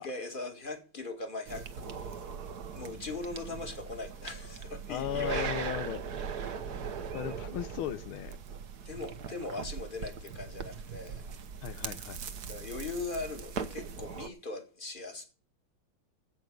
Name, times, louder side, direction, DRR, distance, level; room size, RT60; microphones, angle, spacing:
voice 1, 0.0-2.3 2.7-5.5 6.4-6.6 6.9-7.1 8.9-11.2 12.2-15.2, left 3 dB, 25° left, 2.1 m, -40 dB
sound 1, 1.5-14.3, right 6 dB, 55° right, 1.4 m, -40 dB
voice 2, 4.9-6.0 7.1-8.3 11.6-12.2, left 11 dB, 80° left, 1.6 m, -36 dB
16.0 x 5.8 x 7.7 m
omnidirectional pair, 2.3 m